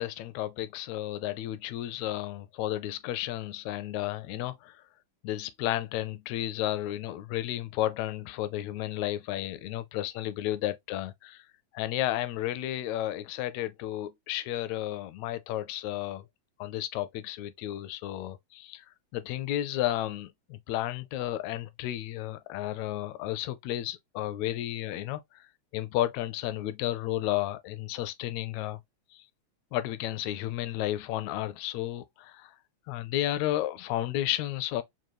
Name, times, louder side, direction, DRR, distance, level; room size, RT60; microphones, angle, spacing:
voice 1, 0.0-4.8 5.2-11.4 11.7-16.2 16.6-18.9 19.1-25.4 25.7-28.8 29.7-32.5 32.9-34.8, left 14 dB, 80° left, 1.7 m, -32 dB
5.2 x 2.2 x 3.0 m
omnidirectional pair, 3.4 m